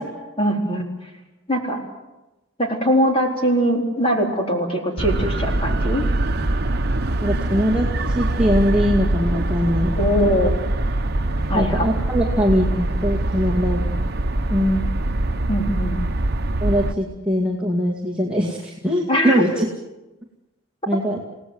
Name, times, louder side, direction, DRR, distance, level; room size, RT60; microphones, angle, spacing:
voice 1, 0.4-0.8 1.5-1.8 2.6-6.1 9.9-10.5 11.5-11.9 15.5-16.0 19.1-19.6, equal, 25° left, 1 dB, 4.0 m, -21 dB
sound 1, 5.0-16.9, right 1 dB, 50° right, 1.1 m, -23 dB
voice 2, 7.2-10.0 11.5-13.8 14.5-14.9 16.6-19.7 20.9-21.2, equal, 5° right, -3 dB, 2.1 m, -21 dB
29.0 x 18.0 x 7.9 m, 1.0 s
head